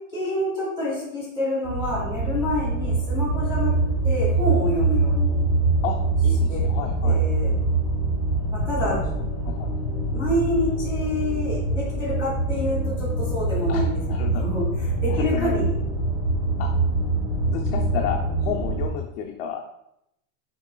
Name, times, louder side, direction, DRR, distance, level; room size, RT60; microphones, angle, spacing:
voice 1, 0.1-5.4 6.5-6.6 7.0-7.5 8.5-9.0 10.1-13.9 14.3-14.7 15.0-15.8, left 1 dB, 10° right, -8 dB, 1.6 m, -27 dB
sound 1, 1.6-18.9, right 2 dB, 25° right, 1.2 m, -24 dB
voice 2, 6.2-7.2 8.8-9.0 9.4-9.7 13.7-14.4 15.1-15.6 16.6-16.7 17.5-19.7, left 7 dB, 50° left, 0 dB, 0.5 m, -31 dB
5.9 x 4.0 x 2.2 m, 0.80 s
supercardioid pair, 170°, 41 cm